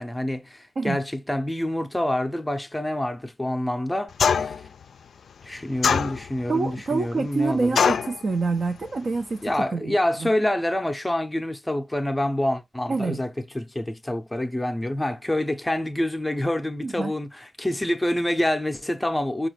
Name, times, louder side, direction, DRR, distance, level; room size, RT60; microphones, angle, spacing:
voice 1, 0.0-4.5 5.4-7.8 9.4-19.5, left 1 dB, 10° left, 0.6 m, -27 dB
sound 1, 4.2-4.7 5.8-6.5 7.8-8.2, left 6 dB, 70° left, 0.3 m, -21 dB
voice 2, 6.5-10.3 12.9-13.2 16.8-17.1, right 4 dB, 50° right, 0.5 m, -27 dB
4.9 x 2.3 x 3.1 m
cardioid pair, 80°, 0 cm